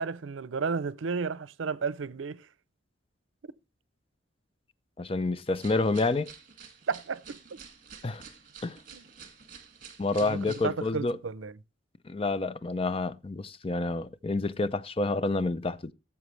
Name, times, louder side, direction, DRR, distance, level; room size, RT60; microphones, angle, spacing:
voice 1, 0.0-2.4 6.9-7.4 8.9-9.0 10.3-11.5, right 5 dB, 90° right, 0.5 m, -32 dB
voice 2, 5.0-6.3 8.0-8.2 8.6-8.8 10.0-11.2 12.0-15.9, left 3 dB, 30° left, 0.5 m, -29 dB
sound 1, 5.5-10.7, right 6 dB, 45° right, 2.0 m, -49 dB
17.5 x 7.2 x 3.2 m
head